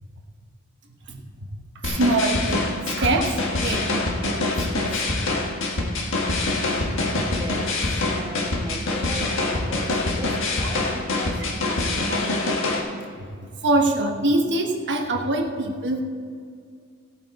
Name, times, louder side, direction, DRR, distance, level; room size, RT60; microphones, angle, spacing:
voice 1, 1.5-4.9 7.1-7.3 13.2-16.0, right 2 dB, 55° right, 3 dB, 1.2 m, -25 dB
sound 1, 1.8-12.8, left 2 dB, 60° left, 1.5 m, -25 dB
voice 2, 7.2-12.4, right 1 dB, 15° right, 3 dB, 1.0 m, -38 dB
17.0 x 8.5 x 4.1 m, 2.2 s
head